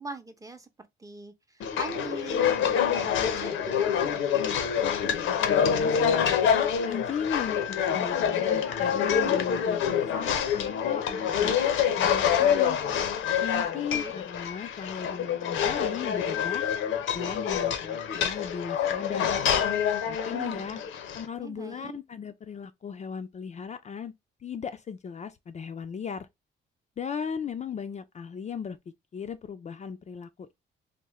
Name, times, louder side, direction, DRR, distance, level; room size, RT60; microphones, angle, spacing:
voice 1, 0.0-3.9 13.7-14.1 20.3-20.8 21.3-22.0, right 3 dB, 15° right, 0.7 m, -42 dB
sound 1, 1.6-21.3, left 8 dB, 80° left, 0.7 m, -26 dB
voice 2, 5.4-6.5 6.8-11.6 11.9-12.8 13.4-16.7 17.1-19.3 20.1-20.8 21.1-24.1 24.4-26.3 27.0-28.8 29.1-30.5, left 7 dB, 35° left, 0.4 m, -37 dB
3.5 x 2.1 x 3.0 m
cardioid pair, 90°, 20 cm